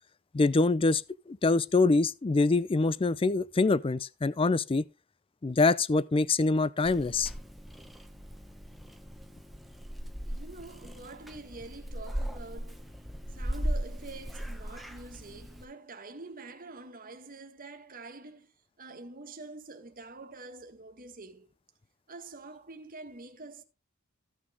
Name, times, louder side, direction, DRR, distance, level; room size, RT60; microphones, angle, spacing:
voice 1, 0.3-4.8 5.4-7.3, left 3 dB, 25° left, 0.4 m, -25 dB
Purr / Meow, 6.8-15.6, equal, ahead, 1.0 m, -38 dB
voice 2, 10.2-12.9 13.3-18.5 18.8-21.5 22.1-23.6, right 3 dB, 40° right, 1.6 m, -46 dB
15.0 x 6.2 x 3.5 m
head